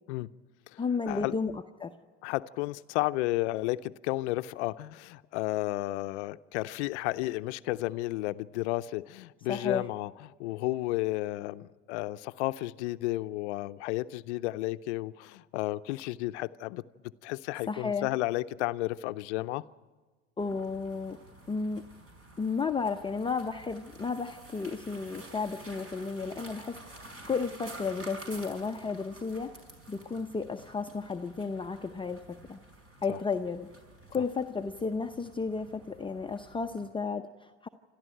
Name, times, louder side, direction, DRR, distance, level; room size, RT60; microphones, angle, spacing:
voice 1, 0.8-1.9 9.5-9.9 17.7-18.1 20.4-21.2 21.5-21.8 22.4-27.0 27.3-29.5 29.9-32.6 33.0-33.7 34.1-37.7, left 4 dB, 15° left, 0.7 m, -33 dB
voice 2, 2.2-10.1 10.4-16.8 17.2-19.6 33.1-33.2, left 18 dB, 70° left, 0.7 m, -32 dB
sound 1, 20.4-36.9, right 2 dB, 40° right, 5.0 m, -50 dB
28.0 x 13.5 x 9.1 m
hypercardioid pair, 85°, 35 cm